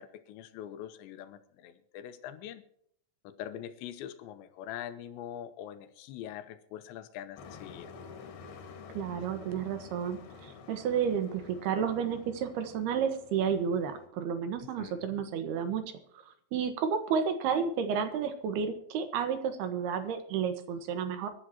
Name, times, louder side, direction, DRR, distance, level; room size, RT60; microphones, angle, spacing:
voice 1, 0.0-2.6 3.2-7.9 14.8-15.1, left 10 dB, 85° left, 10 dB, 3.2 m, -43 dB
Truck, 7.4-14.1, left 5 dB, 65° left, 3.6 m, -49 dB
voice 2, 8.9-15.8 16.5-21.3, right 7 dB, 70° right, 8 dB, 3.2 m, -31 dB
24.0 x 11.5 x 3.0 m, 0.69 s
omnidirectional pair, 5.2 m